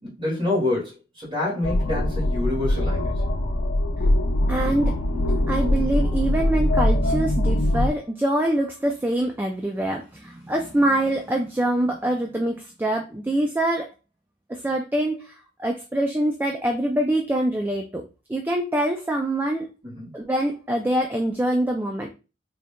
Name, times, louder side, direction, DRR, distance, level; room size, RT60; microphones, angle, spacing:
voice 1, 0.0-3.1 19.9-20.1, left 2 dB, 25° right, 2.1 m, -27 dB
sound 1, 1.6-7.9, left 1 dB, 85° left, 0.7 m, -22 dB
voice 2, 4.5-5.0 5.5-13.9 14.5-18.0 18.3-19.7 20.1-22.1, right 1 dB, 10° right, 0.3 m, -24 dB
3.9 x 3.5 x 2.2 m
head